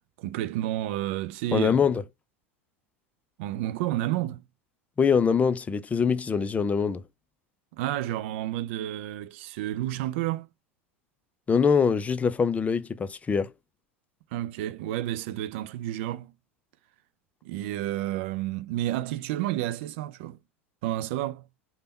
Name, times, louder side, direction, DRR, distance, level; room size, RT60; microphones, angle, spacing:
voice 1, 0.2-1.8 3.4-4.4 7.7-10.5 14.3-16.3 17.4-20.4 20.8-21.4, right 14 dB, 65° right, 0.4 m, -30 dB
voice 2, 1.5-2.0 5.0-7.0 11.5-13.5, left 6 dB, 20° left, 0.4 m, -23 dB
3.4 x 2.2 x 4.0 m
hypercardioid pair, 90°, 7 cm